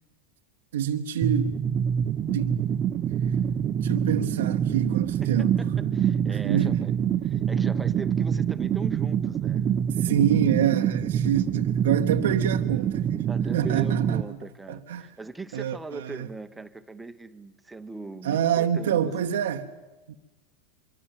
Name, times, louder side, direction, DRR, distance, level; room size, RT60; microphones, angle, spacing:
voice 1, 0.7-1.6 2.3-2.6 3.8-5.5 6.3-6.8 9.9-13.2 13.5-14.4 14.7-15.1 15.5-16.3 18.2-19.7, right 9 dB, 75° right, 1.0 m, -27 dB
sound 1, 1.2-14.2, right 9 dB, 40° right, 0.8 m, -25 dB
voice 2, 5.2-6.9 7.2-9.6 12.3-12.5 13.3-19.1, right 3 dB, 10° right, 1.1 m, -40 dB
25.0 x 24.0 x 7.5 m
hypercardioid pair, 95°, 0 cm